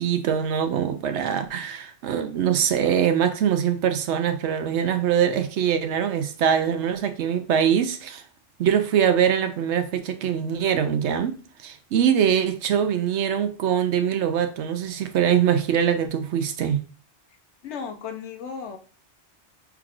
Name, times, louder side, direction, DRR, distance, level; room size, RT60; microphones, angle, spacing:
voice 1, 0.0-8.2 8.6-16.8, right 8 dB, 80° right, 0.9 m, -23 dB
voice 2, 17.6-18.8, left 6 dB, 75° left, 1.1 m, -35 dB
5.9 x 3.6 x 2.4 m
omnidirectional pair, 1.2 m